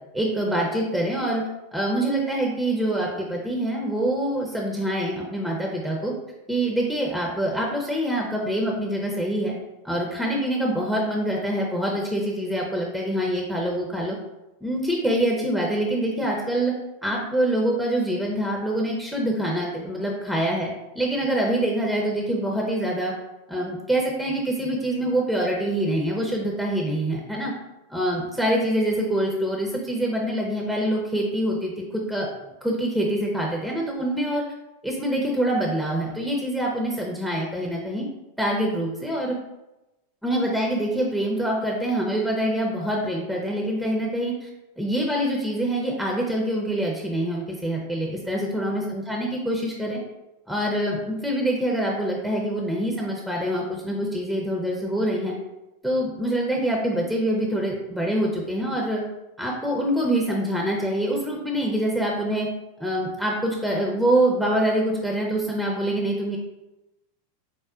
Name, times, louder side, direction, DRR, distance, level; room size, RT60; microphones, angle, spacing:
voice 1, 0.1-1.4 1.7-6.1 6.5-9.5 9.8-14.1 14.6-16.7 17.0-20.7 20.9-23.1 23.5-27.5 27.9-32.3 32.6-34.4 34.8-38.1 38.4-39.3 40.2-44.5 44.8-50.0 50.5-55.3 55.8-59.0 59.4-62.5 62.8-66.4, right 1 dB, ahead, -1 dB, 0.6 m, -25 dB
4.8 x 2.1 x 2.4 m, 0.97 s
hypercardioid pair, 95°, 0 cm